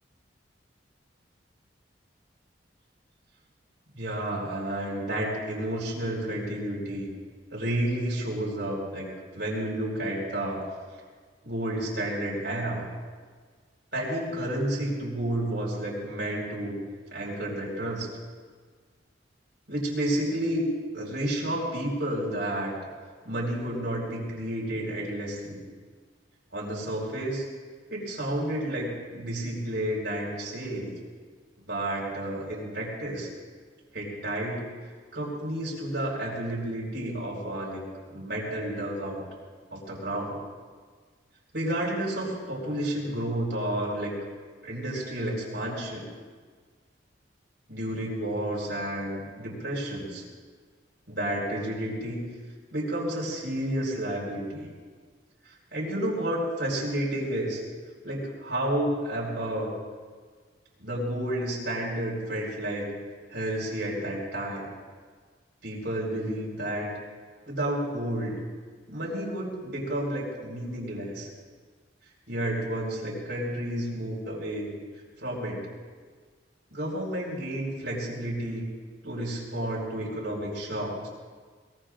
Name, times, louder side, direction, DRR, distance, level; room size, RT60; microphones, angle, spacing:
voice 1, 3.9-7.1 7.5-9.1 9.3-10.6 11.4-12.9 13.9-16.8 17.1-18.1 19.7-20.7 20.9-22.7 23.2-25.6 26.5-27.4 27.9-30.9 31.7-33.3 33.9-34.6 35.1-37.8 38.1-39.2 39.7-40.4 41.5-44.1 44.6-46.1 47.7-50.2 51.1-52.2 52.7-54.7 55.4-57.6 58.0-59.7 60.8-62.9 63.3-64.7 65.6-66.9 67.5-68.3 68.9-71.3 72.3-74.7 75.2-75.7 76.7-78.7 79.0-81.1, right 1 dB, 75° right, -5 dB, 5.0 m, -31 dB
23.5 x 21.5 x 2.6 m, 1.5 s
head